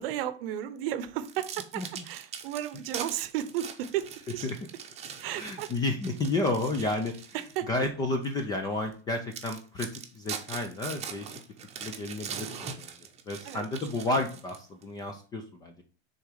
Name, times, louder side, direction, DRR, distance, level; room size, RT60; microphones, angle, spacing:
voice 1, 0.0-4.5 5.2-5.7 7.3-7.7 13.4-13.7, right 11 dB, 55° right, 13 dB, 0.8 m, -34 dB
sound 1, 1.2-7.7 8.2-8.4 8.9-9.0 9.3-14.8, right 7 dB, 20° right, 0.8 m, -42 dB
voice 2, 5.3-7.2 7.7-11.3 11.8-12.9 13.3-15.8, left 2 dB, 10° left, 5 dB, 0.3 m, -31 dB
6.4 x 3.7 x 4.8 m, 0.39 s
supercardioid pair, 145°, 35 cm